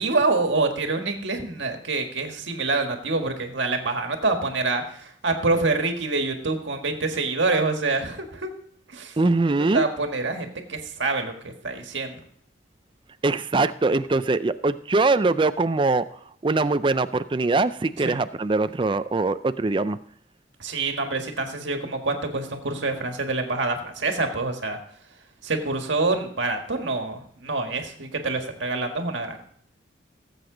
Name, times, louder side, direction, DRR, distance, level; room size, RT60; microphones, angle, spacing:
voice 1, 0.0-8.5 8.9-9.2 9.7-12.1 18.0-18.2 20.6-24.8 25.4-29.4, right 3 dB, 80° right, 5 dB, 1.7 m, -26 dB
voice 2, 9.2-9.8 13.2-16.0 16.4-20.0, right 3 dB, 25° right, 13 dB, 0.4 m, -22 dB
18.0 x 7.9 x 3.9 m, 0.65 s
head